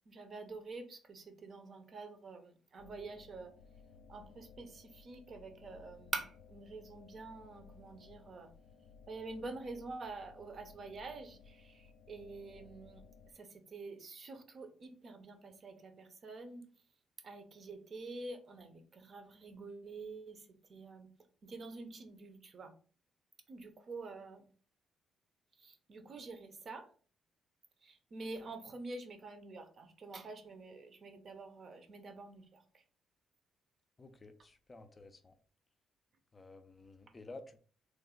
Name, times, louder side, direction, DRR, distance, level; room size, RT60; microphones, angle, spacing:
voice 1, 0.1-3.5 4.1-8.5 9.1-13.0 13.3-16.6 17.2-21.1 21.4-22.7 23.5-24.5 25.6-26.9 27.8-32.8, right 3 dB, 50° right, 6 dB, 0.7 m, -47 dB
sound 1, 2.8-13.3, left 5 dB, 80° left, 0.4 m, -59 dB
voice 2, 34.0-35.3 36.3-37.6, left 2 dB, 30° left, 8 dB, 0.5 m, -53 dB
3.2 x 2.1 x 3.7 m, 0.41 s
cardioid pair, 90°, 0 cm